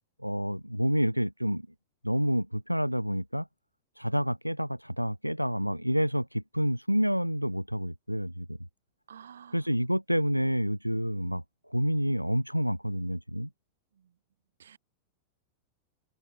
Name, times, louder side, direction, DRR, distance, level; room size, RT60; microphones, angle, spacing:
voice 1, 0.2-1.6 2.0-3.5 4.0-8.6 9.5-11.4 11.7-13.5, equal, 90° right, 1.2 m, -28 dB
voice 2, 9.1-9.6 14.0-14.1 14.6-14.8, right 8 dB, 65° right, 1.2 m, -50 dB
figure-of-eight pair, 90°, 0 cm